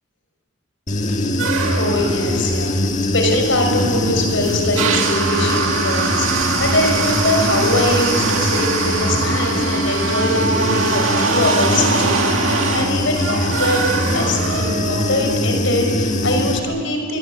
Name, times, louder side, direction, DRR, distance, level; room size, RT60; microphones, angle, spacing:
Human voice / Buzz, 0.9-16.6, left 1 dB, 35° left, 1.8 m, -22 dB
sound 1, 1.4-15.4, right 4 dB, 80° right, 2.2 m, -23 dB
voice 1, 1.7-13.8 14.1-17.2, left 1 dB, 70° left, 3 dB, 6.0 m, -22 dB
25.5 x 22.5 x 8.9 m, 2.1 s
head